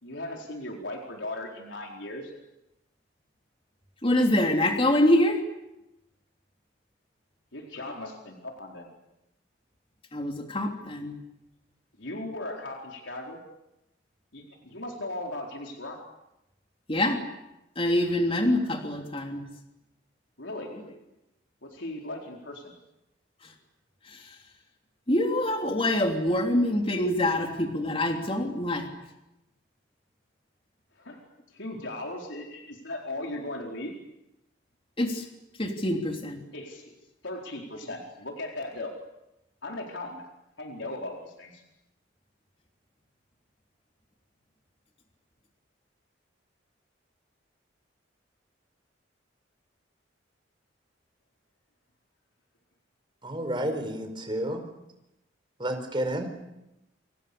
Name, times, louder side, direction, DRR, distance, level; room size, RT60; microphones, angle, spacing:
voice 1, 0.0-2.3 7.5-8.9 12.0-13.4 14.3-16.0 20.4-20.8 21.6-22.7 31.0-31.2 31.5-33.9 36.5-36.9 37.2-38.9 39.6-40.3 40.6-41.6, left 1 dB, 80° left, 1 dB, 4.4 m, -37 dB
voice 2, 4.0-5.4 10.1-11.2 16.9-17.2 17.7-19.4 23.4-23.5 24.0-24.4 25.1-28.9 35.0-35.3 35.6-36.4, left 1 dB, 30° left, 3 dB, 3.3 m, -25 dB
voice 3, 53.2-54.6 55.6-56.3, right 1 dB, 25° right, 6 dB, 4.8 m, -30 dB
29.5 x 28.0 x 7.0 m, 0.91 s
head